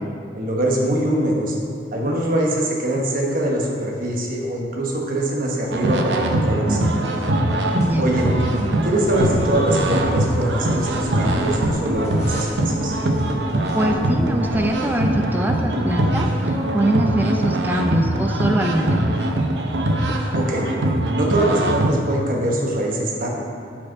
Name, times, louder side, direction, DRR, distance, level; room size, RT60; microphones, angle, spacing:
voice 1, 0.3-1.5 1.9-6.9 8.0-8.3 8.8-13.0 20.3-20.7 21.1-23.3, right 1 dB, 55° right, -1 dB, 1.1 m, -23 dB
sound 1, 5.7-21.9, right 1 dB, 80° right, 0.6 m, -22 dB
sound 2, 7.5-15.0, equal, 40° left, 1.3 m, -37 dB
voice 2, 7.7-8.1 13.7-19.1, right 1 dB, 10° right, 2 dB, 0.4 m, -23 dB
7.3 x 4.9 x 4.6 m, 2.3 s
head